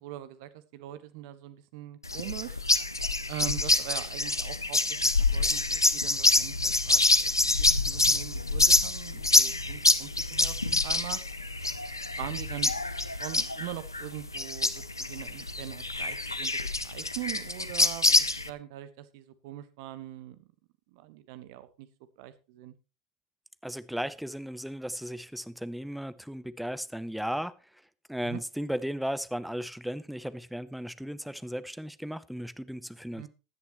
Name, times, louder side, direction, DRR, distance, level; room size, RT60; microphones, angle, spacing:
voice 1, 0.0-2.6 3.3-7.3 7.6-11.2 12.2-12.7 13.0-20.5 20.9-21.9 22.2-22.7 28.2-28.4 33.1-33.3, right 14 dB, 55° right, 1.3 m, -42 dB
sound 1, 2.0-18.5, left 2 dB, 90° left, 0.7 m, -26 dB
voice 2, 23.6-27.6 28.1-33.3, equal, ahead, 0.7 m, -35 dB
16.0 x 10.5 x 3.0 m
figure-of-eight pair, 80°, 2 cm